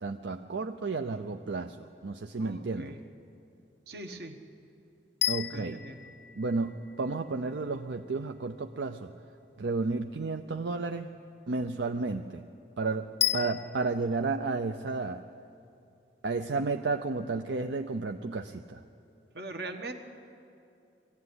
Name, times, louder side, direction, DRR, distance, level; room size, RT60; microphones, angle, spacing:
voice 1, 0.0-1.8 2.0-2.9 5.3-5.8 6.3-9.1 9.6-11.1 11.5-12.4 12.8-15.2 16.2-18.8, right 3 dB, 80° right, 6 dB, 0.6 m, -32 dB
voice 2, 2.4-3.0 3.9-4.4 5.5-6.1 19.3-20.0, right 2 dB, 60° right, 6 dB, 1.4 m, -41 dB
sound 1, 5.2-7.4 13.2-14.0, left 12 dB, 65° left, 0.4 m, -33 dB
21.5 x 15.5 x 9.6 m, 2.6 s
head